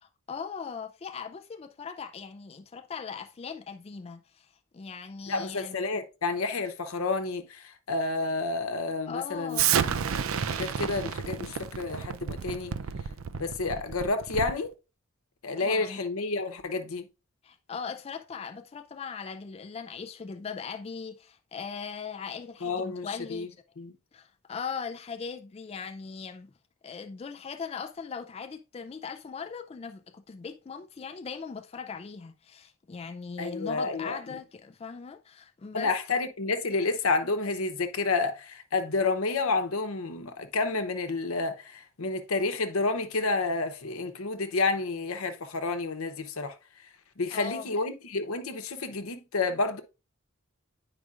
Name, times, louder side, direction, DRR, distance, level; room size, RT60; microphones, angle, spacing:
voice 1, 0.0-5.7 9.1-9.7 15.6-16.0 17.4-23.6 24.1-26.5 26.8-35.9 47.3-47.7, left 6 dB, 30° left, 0.3 m, -39 dB
voice 2, 5.3-10.0 10.4-12.7 13.4-14.7 15.4-17.1 22.6-23.5 23.8-23.9 33.4-34.2 35.7-46.5 47.2-49.8, left 3 dB, 80° left, 0.9 m, -30 dB
Explosion, 9.5-14.7, right 8 dB, 70° right, 0.4 m, -30 dB
9.6 x 4.9 x 2.5 m
head